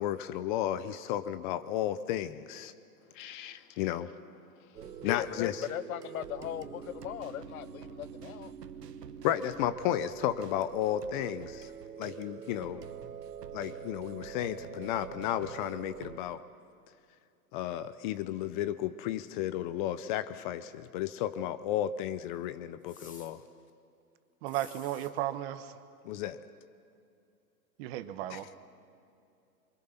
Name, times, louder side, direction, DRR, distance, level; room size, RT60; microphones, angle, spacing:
voice 1, 0.0-2.7 3.1-4.1 5.0-5.6 9.2-11.7 12.0-12.8 13.5-16.4 17.5-23.4 26.0-26.4 28.3-28.5, left 12 dB, 30° left, 13 dB, 0.7 m, -33 dB
voice 2, 4.5-8.5, left 12 dB, 60° left, 17 dB, 0.8 m, -39 dB
sound 1, 4.7-16.2, right 8 dB, 90° right, 1.4 m, -45 dB
sound 2, 22.9-23.3 24.5-25.1, left 4 dB, 15° left, 2.3 m, -52 dB
voice 3, 24.4-25.8 27.8-28.5, right 13 dB, 40° right, 11 dB, 1.2 m, -35 dB
27.5 x 23.5 x 5.8 m, 2.6 s
hypercardioid pair, 130°, 47 cm